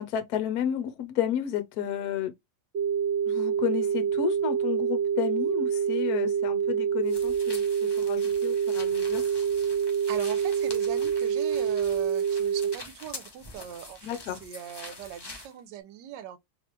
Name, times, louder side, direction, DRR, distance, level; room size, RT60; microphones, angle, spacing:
voice 1, 0.0-2.3 3.3-9.3 14.0-14.4, left 10 dB, 65° left, 1.1 m, -32 dB
sound 1, 2.7-12.7, right 7 dB, 45° right, 1.0 m, -26 dB
sound 2, 7.1-15.5, left 2 dB, 40° left, 0.3 m, -45 dB
voice 2, 10.1-16.4, right 11 dB, 75° right, 1.2 m, -40 dB
3.3 x 3.1 x 2.9 m
omnidirectional pair, 1.9 m